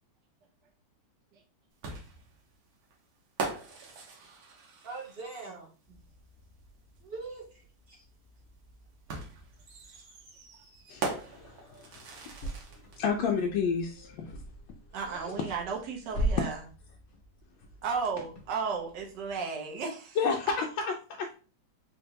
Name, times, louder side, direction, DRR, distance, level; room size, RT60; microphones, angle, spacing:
sound 1, 1.8-5.5 7.0-7.1 9.1-13.0, right 4 dB, 85° right, 1.8 m, -40 dB
voice 1, 4.8-5.7 7.0-8.0 15.0-15.3, right 3 dB, 40° right, -1 dB, 0.9 m, -42 dB
sound 2, 5.8-19.4, right 1 dB, 35° left, 0.8 m, -42 dB
voice 2, 10.9-12.1 13.0-14.4 20.2-21.4, left 5 dB, 80° left, 1 dB, 1.4 m, -31 dB
voice 3, 14.9-16.6 17.8-20.2, right 5 dB, 65° right, 0 dB, 1.5 m, -34 dB
4.1 x 3.5 x 2.8 m, 0.36 s
omnidirectional pair, 2.1 m